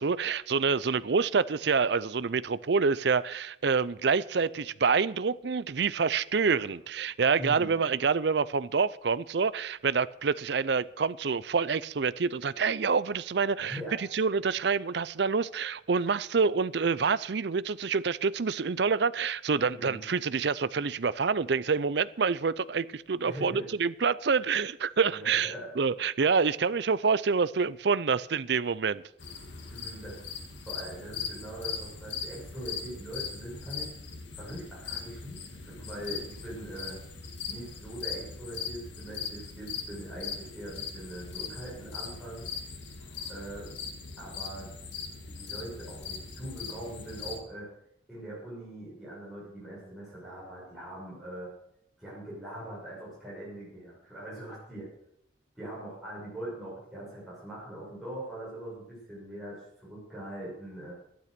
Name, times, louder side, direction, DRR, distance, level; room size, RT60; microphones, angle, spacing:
voice 1, 0.0-29.0, right 5 dB, 65° right, 0.5 m, -27 dB
voice 2, 7.4-7.7 13.6-13.9 19.7-20.0 23.2-23.6 25.1-25.7 29.7-30.2 30.6-33.9 34.3-37.0 37.5-42.5 43.3-43.7 44.2-44.7 45.2-47.7 48.1-51.5 52.0-54.9 55.5-60.9, right 1 dB, ahead, 6.7 m, -42 dB
sound 1, 29.2-47.4, left 6 dB, 75° left, 2.0 m, -40 dB
12.0 x 12.0 x 6.8 m
head